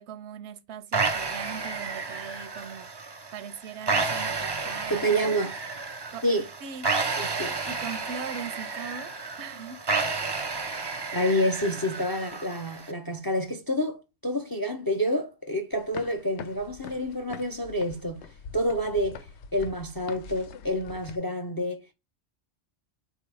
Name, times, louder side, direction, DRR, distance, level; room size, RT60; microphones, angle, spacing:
voice 1, 0.0-2.9 3.3-5.3 6.1-6.2 6.6-6.9 7.7-9.8, right 7 dB, 90° right, 0.9 m, -40 dB
sound 1, 0.9-12.9, right 4 dB, 35° right, 0.4 m, -31 dB
voice 2, 4.9-5.6 6.2-6.5 7.2-7.6 11.1-18.2 18.5-19.3 19.5-21.9, equal, 35° left, 0.3 m, -28 dB
sound 2, 15.7-21.2, left 5 dB, 85° left, 0.9 m, -44 dB
4.0 x 2.7 x 4.6 m
omnidirectional pair, 1.1 m